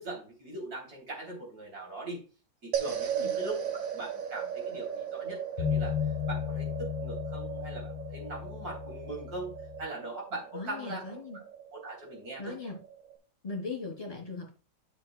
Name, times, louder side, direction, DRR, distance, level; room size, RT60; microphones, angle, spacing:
voice 1, 0.0-2.2 2.6-5.9 6.3-11.2 11.7-12.5, right 2 dB, 50° right, -2 dB, 3.8 m, -41 dB
sound 1, 2.7-13.2, right 8 dB, 75° right, 2.2 m, -37 dB
sound 2, 5.6-9.9, left 10 dB, 85° left, 1.5 m, -34 dB
voice 2, 10.5-11.4 12.4-12.8 13.4-14.5, left 4 dB, 20° left, -1 dB, 3.3 m, -39 dB
12.5 x 6.4 x 2.3 m, 0.36 s
omnidirectional pair, 2.1 m